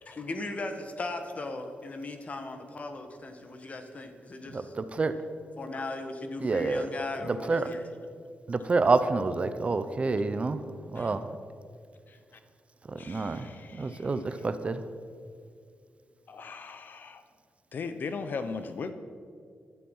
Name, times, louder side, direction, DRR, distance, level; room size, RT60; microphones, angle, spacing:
voice 1, 0.0-4.7 5.6-7.8, left 2 dB, 40° left, 6 dB, 1.7 m, -37 dB
voice 2, 4.5-5.1 6.4-6.9 7.2-7.7 8.5-10.6 10.9-11.3 12.9-14.8, right 3 dB, 35° right, 11 dB, 0.8 m, -28 dB
voice 3, 13.0-14.0 16.3-17.2 17.7-18.9, left 5 dB, 55° left, 10 dB, 0.9 m, -38 dB
16.0 x 12.0 x 5.6 m, 2.2 s
wide cardioid pair, 125°, 4 cm